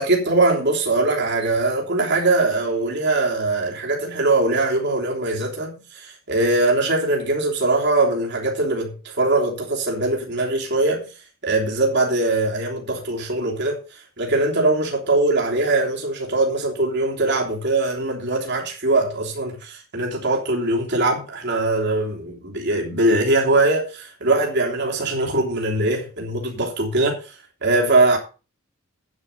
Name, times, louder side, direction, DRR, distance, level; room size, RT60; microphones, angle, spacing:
voice 1, 0.0-11.1 11.4-13.8 14.2-27.2 27.6-28.2, right 2 dB, 55° right, 3.3 m, -21 dB
9.4 x 9.1 x 5.4 m
head